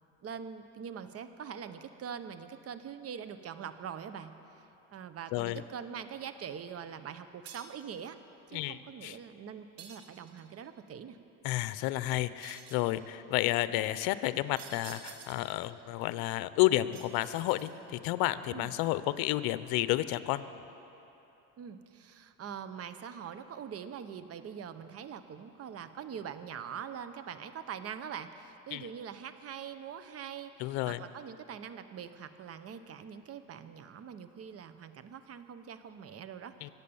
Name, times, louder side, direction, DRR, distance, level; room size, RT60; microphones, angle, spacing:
voice 1, 0.2-4.6 4.9-8.2 8.5-11.2 18.5-18.7 21.6-36.7, right 7 dB, 40° right, 11 dB, 1.0 m, -43 dB
voice 2, 5.3-5.6 8.5-9.2 11.4-20.5 28.7-28.9 30.6-31.0 36.6-36.7, left 16 dB, 75° left, 14 dB, 0.8 m, -31 dB
sound 1, 7.5-7.9 9.8-10.5 12.4-13.0 14.6-15.6 16.9-18.0, right 7 dB, 70° right, 1.7 m, -50 dB
24.5 x 8.5 x 7.0 m, 2.9 s
supercardioid pair, 105°, 37 cm